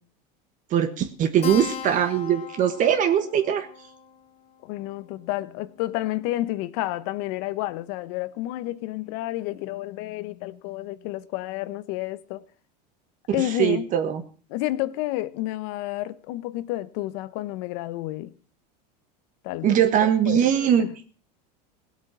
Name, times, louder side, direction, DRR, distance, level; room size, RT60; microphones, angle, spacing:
voice 1, 0.7-3.7 13.4-14.2 19.6-20.9, right 9 dB, 40° right, 1.3 m, -21 dB
Keyboard (musical), 1.4-6.4, left 7 dB, 30° left, 1.9 m, -39 dB
voice 2, 4.6-12.4 13.3-13.9 14.5-18.3 19.4-20.9, left 16 dB, 60° left, 0.9 m, -30 dB
17.5 x 8.3 x 6.1 m
supercardioid pair, 130°, 21 cm